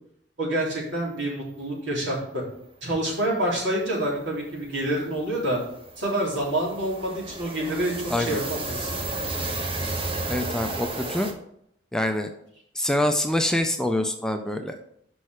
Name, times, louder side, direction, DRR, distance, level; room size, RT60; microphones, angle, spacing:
voice 1, 0.4-2.4 2.8-5.6 6.0-9.0, right 1 dB, 75° right, -4 dB, 3.3 m, -27 dB
sound 1, 2.9-3.0 3.3-3.5 3.8-11.3, right 2 dB, 30° right, 1.0 m, -33 dB
voice 2, 10.3-11.3 11.9-12.3 12.8-14.8, left 1 dB, 5° left, 5 dB, 0.5 m, -25 dB
6.1 x 5.4 x 6.5 m, 0.72 s
head